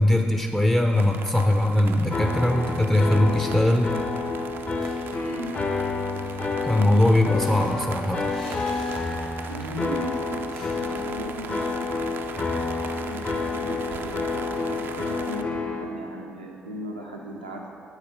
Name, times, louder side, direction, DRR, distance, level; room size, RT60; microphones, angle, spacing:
voice 1, 0.0-3.9 6.6-8.2, left 1 dB, 10° left, 4 dB, 0.6 m, -21 dB
sound 1, 0.9-15.4, right 6 dB, 50° right, 0.4 m, -40 dB
sound 2, 2.1-15.8, left 3 dB, 35° left, 0.9 m, -29 dB
sound 3, 4.8-5.5 5.8-5.9 6.1-9.6 9.9-10.0 10.5-11.3, left 1 dB, 85° left, 1.3 m, -48 dB
voice 2, 9.5-10.5 10.7-12.1 13.0-17.7, equal, 90° right, -1 dB, 0.7 m, -37 dB
9.1 x 4.3 x 5.3 m, 2.7 s
figure-of-eight pair, 45°, 5 cm